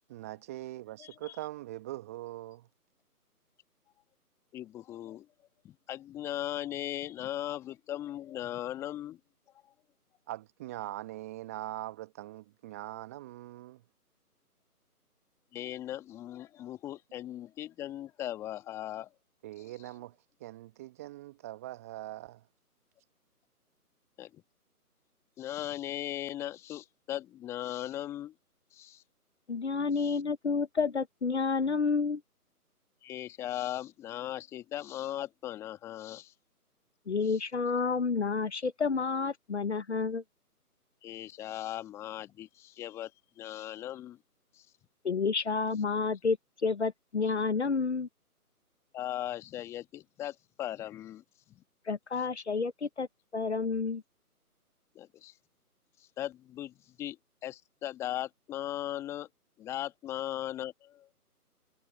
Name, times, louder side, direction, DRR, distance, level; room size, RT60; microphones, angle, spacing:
voice 1, 0.1-2.7 10.3-13.8 19.4-22.4, right 15 dB, 10° right, 1.2 m, -42 dB
voice 2, 1.0-1.3 4.5-5.3 5.6-9.2 15.5-19.1 24.2-24.4 25.4-28.3 28.7-29.0 30.0-30.1 33.0-36.3 37.3-37.4 41.0-43.1 43.4-44.2 44.5-44.7 48.9-51.2 51.5-51.6 55.0-55.3 56.0-57.2 57.4-59.3 59.6-60.7, left 12 dB, 5° left, 1.6 m, -38 dB
voice 3, 29.5-32.2 37.1-40.2 45.0-46.4 46.6-48.1 51.9-53.1 53.3-54.0, left 5 dB, 45° left, 1.3 m, -30 dB
figure-of-eight pair, 150°, 46 cm